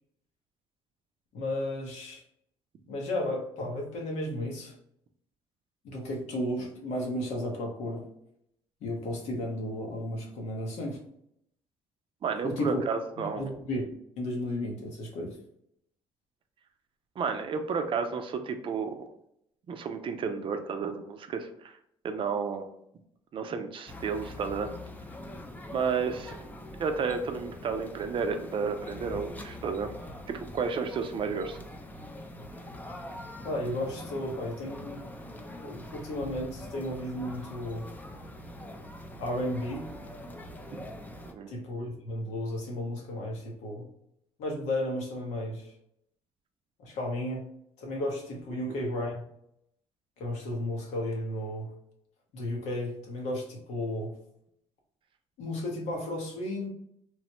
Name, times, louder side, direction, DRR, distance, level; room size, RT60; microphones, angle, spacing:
voice 1, 1.3-2.2 2.9-4.7 5.8-8.0 8.8-11.0 12.4-12.8 13.2-13.8 14.2-15.4 33.4-35.0 35.6-37.9 39.2-39.9 41.5-43.9 44.4-45.7 46.8-47.4 47.8-49.2 50.2-51.7 52.3-54.1 55.4-56.7, left 1 dB, 80° left, 0 dB, 1.0 m, -33 dB
voice 2, 12.2-13.5 17.2-19.1 19.7-21.8 22.0-22.7 23.3-24.7 25.7-26.4 26.8-29.9 30.3-31.6 41.3-41.5, right 5 dB, 50° right, 7 dB, 0.5 m, -32 dB
sound 1, 23.9-41.3, left 1 dB, 15° left, 0.5 m, -43 dB
3.1 x 2.1 x 2.9 m, 0.73 s
cardioid pair, 90°, 12 cm